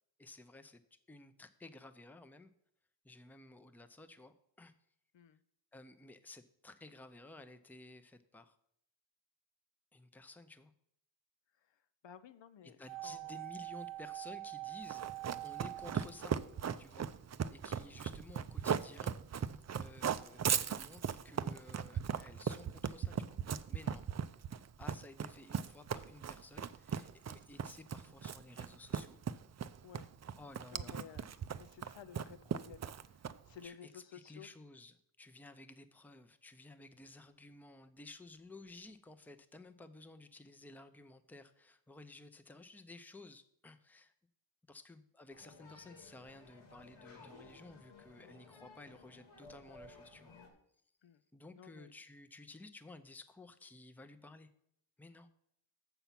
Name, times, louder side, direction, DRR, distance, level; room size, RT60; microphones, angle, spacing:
voice 1, 0.2-0.8 1.1-2.5 3.0-4.7 5.7-8.6 9.9-10.7 12.6-15.0 15.4-16.4 16.8-17.1 17.5-23.4 23.7-24.1 24.8-29.2 30.4-31.4 33.6-44.1 44.7-50.3 51.3-54.5 55.0-55.3, left 2 dB, 5° left, 10 dB, 0.6 m, -55 dB
voice 2, 12.0-12.8 13.0-13.4 29.8-30.1 30.7-31.3 31.5-34.5 51.0-51.2 51.5-51.9, left 8 dB, 70° left, 11 dB, 0.6 m, -54 dB
sound 1, 12.9-17.0 17.2-17.3, right 17 dB, 80° right, 0.9 m, -45 dB
Run, 14.9-33.6, right 7 dB, 40° right, 0.4 m, -38 dB
sound 2, 45.3-50.5, left 3 dB, 90° left, 1.9 m, -57 dB
7.0 x 6.9 x 5.8 m, 0.72 s
cardioid pair, 80°, 45 cm